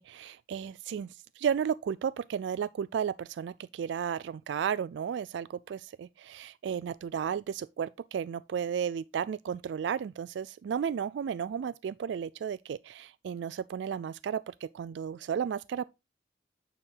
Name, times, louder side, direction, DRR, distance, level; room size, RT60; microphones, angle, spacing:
voice 1, 0.0-15.8, right 7 dB, 75° right, 0.3 m, -33 dB
8.8 x 4.7 x 3.7 m
head